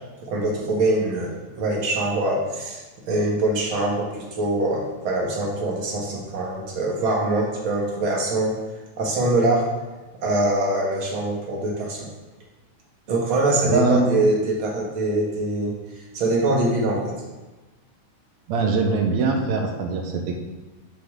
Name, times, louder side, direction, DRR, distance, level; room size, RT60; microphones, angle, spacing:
voice 1, 0.2-1.3 1.6-2.8 3.1-8.6 9.0-9.7 10.2-12.1 13.1-15.7 16.1-17.1, right 2 dB, 55° right, -1 dB, 1.5 m, -23 dB
voice 2, 13.6-14.1 18.5-20.4, right 3 dB, 75° right, 4 dB, 1.7 m, -22 dB
8.2 x 6.5 x 3.6 m, 1.2 s
omnidirectional pair, 3.9 m